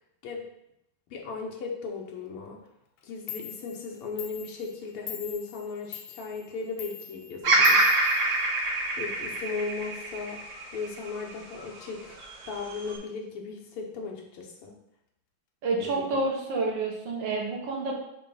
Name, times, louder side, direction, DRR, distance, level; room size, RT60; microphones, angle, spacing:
voice 1, 1.1-2.6 3.0-8.0 9.0-10.4 10.7-14.7 15.8-16.2, left 4 dB, 85° left, 0 dB, 1.9 m, -37 dB
Clock, 3.0-3.1 3.3-8.9, left 9 dB, 70° left, 1.4 m, -43 dB
Bird vocalization bird call bird song, 7.4-11.7 12.2-13.0, right 2 dB, 75° right, 2.2 m, -25 dB
voice 2, 15.6-17.9, right 3 dB, 60° right, -1 dB, 1.9 m, -29 dB
6.5 x 3.2 x 5.6 m, 0.81 s
omnidirectional pair, 2.4 m